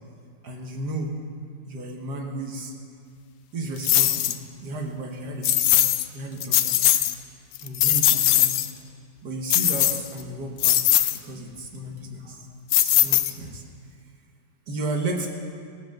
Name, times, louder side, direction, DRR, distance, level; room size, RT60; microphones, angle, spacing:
voice 1, 0.4-1.1 1.7-2.7 3.5-5.9 6.1-6.8 7.6-8.5 9.2-12.5 12.8-13.6 14.7-15.3, right 2 dB, 80° right, 1 dB, 1.9 m, -33 dB
sound 1, 3.8-4.4 5.4-6.1 6.4-7.1 7.5-8.7 9.5-10.2 10.6-11.2 12.7-13.6, left 13 dB, 70° left, 0.9 m, -20 dB
15.5 x 7.7 x 6.6 m, 2.3 s
omnidirectional pair, 1.8 m